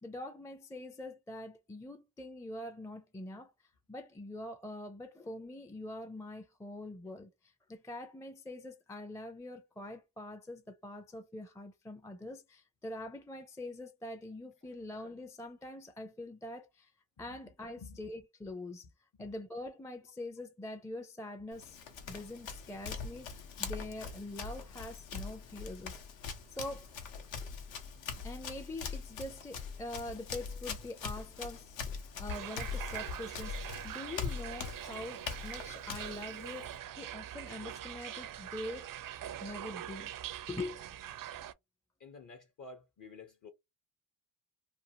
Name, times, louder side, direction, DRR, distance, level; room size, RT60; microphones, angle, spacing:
voice 1, 0.0-3.5 3.9-16.9 17.2-18.9 19.2-26.0 26.5-26.9 28.2-38.9 39.4-40.1 40.5-41.0, left 1 dB, 5° left, 0.4 m, -44 dB
Run, 21.5-36.8, left 5 dB, 75° left, 0.9 m, -42 dB
sound 1, 32.3-41.5, right 11 dB, 50° right, 0.4 m, -43 dB
voice 2, 42.0-43.5, left 3 dB, 45° left, 0.7 m, -50 dB
2.6 x 2.3 x 2.8 m
supercardioid pair, 60°, 45 cm